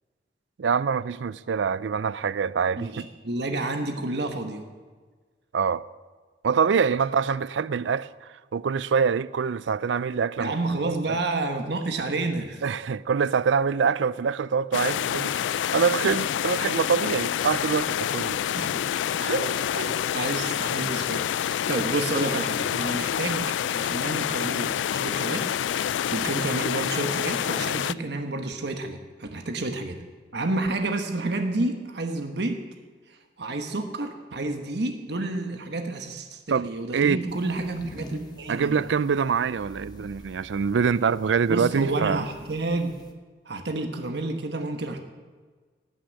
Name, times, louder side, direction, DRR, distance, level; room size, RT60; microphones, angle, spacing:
voice 1, 0.6-3.0 5.5-5.8 6.4-8.1 8.5-10.5 10.8-11.2 12.6-18.4 36.5-37.2 38.5-42.2, right 6 dB, 80° right, 0.4 m, -25 dB
voice 2, 2.8-4.6 10.4-12.6 18.6-18.8 19.2-30.0 30.3-32.6 33.1-38.8 41.5-43.0 43.4-45.0, right 2 dB, 65° right, 1.2 m, -30 dB
sound 1, 14.7-27.9, left 10 dB, 80° left, 0.3 m, -27 dB
sound 2, 37.3-43.1, equal, 20° left, 1.1 m, -48 dB
18.0 x 6.3 x 8.3 m
head